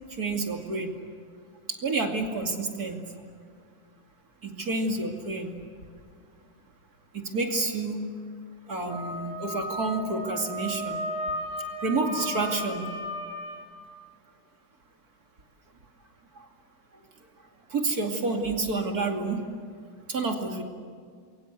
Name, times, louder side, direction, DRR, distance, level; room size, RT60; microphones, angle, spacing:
voice 1, 0.2-0.9 1.7-3.0 4.4-5.6 7.1-8.0 8.7-11.0 11.8-12.8 17.7-19.4 20.1-20.6, right 3 dB, 50° right, 3 dB, 3.0 m, -29 dB
Wind instrument woodwind instrument, 8.9-13.6, equal, 5° right, 5.8 m, -34 dB
27.5 x 23.0 x 8.3 m, 2.1 s
omnidirectional pair, 2.1 m